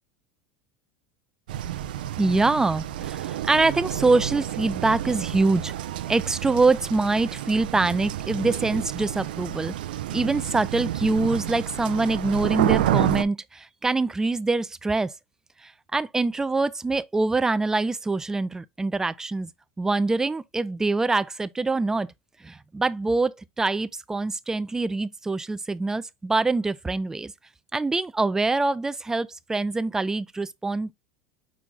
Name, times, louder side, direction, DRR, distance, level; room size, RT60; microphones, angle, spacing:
sound 1, 1.5-13.2, right 12 dB, 85° right, 0.5 m, -29 dB
voice 1, 2.2-5.7 6.1-9.7 10.1-15.1 15.6-19.5 19.8-22.1 22.4-27.3 27.7-30.9, right 3 dB, 10° right, 0.4 m, -24 dB
6.2 x 2.2 x 3.8 m
supercardioid pair, 110°, 5 cm